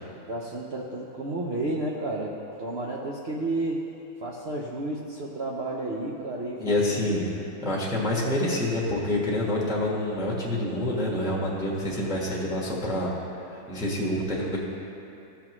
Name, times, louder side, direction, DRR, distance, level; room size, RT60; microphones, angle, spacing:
voice 1, 0.3-3.9 4.2-7.1, right 2 dB, 75° right, -3 dB, 0.6 m, -32 dB
voice 2, 6.6-7.2 7.6-13.1 13.5-14.6, left 1 dB, ahead, -4 dB, 1.1 m, -27 dB
15.0 x 5.8 x 3.0 m, 2.8 s
omnidirectional pair, 2.0 m